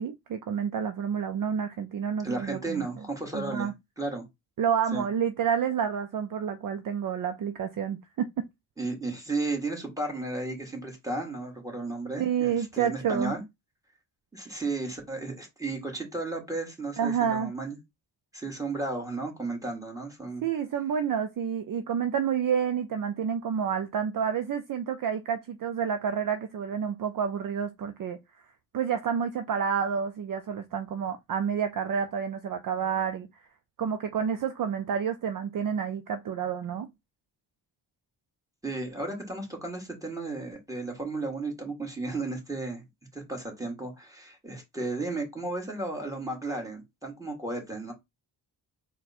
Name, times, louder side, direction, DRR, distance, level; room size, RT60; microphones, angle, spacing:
voice 1, 0.0-2.9 3.3-3.7 4.6-8.4 12.2-13.4 17.0-17.5 20.4-28.2 28.7-33.3 33.8-36.9, right 7 dB, 50° right, 0.5 m, -29 dB
voice 2, 2.2-3.7 4.0-4.3 4.9-5.1 8.8-13.4 14.3-17.8 18.3-20.4 38.6-42.8 43.1-47.9, right 2 dB, 10° right, 1.9 m, -34 dB
4.1 x 2.3 x 4.2 m
cardioid pair, 75°, 43 cm